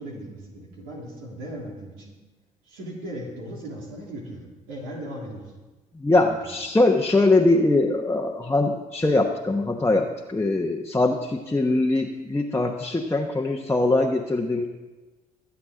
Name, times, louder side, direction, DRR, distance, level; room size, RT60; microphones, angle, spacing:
voice 1, 0.0-2.1 2.6-5.5 6.2-6.6, right 1 dB, 80° right, -3 dB, 3.3 m, -38 dB
voice 2, 6.0-14.7, left 2 dB, 15° left, 0 dB, 1.2 m, -22 dB
22.0 x 8.3 x 3.9 m, 1.2 s
hypercardioid pair, 55°, 18 cm